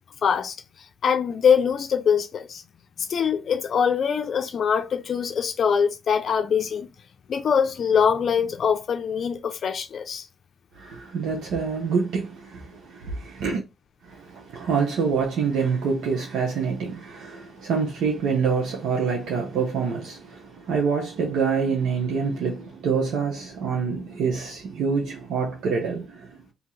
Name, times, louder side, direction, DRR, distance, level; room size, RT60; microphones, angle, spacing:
voice 1, 0.2-0.6 1.0-2.6 3.0-6.9 7.3-10.3, left 7 dB, 55° left, 0.5 m, -23 dB
voice 2, 10.7-13.6 14.0-26.5, right 5 dB, 80° right, 0.9 m, -26 dB
2.8 x 2.8 x 3.9 m
cardioid pair, 90°, 0 cm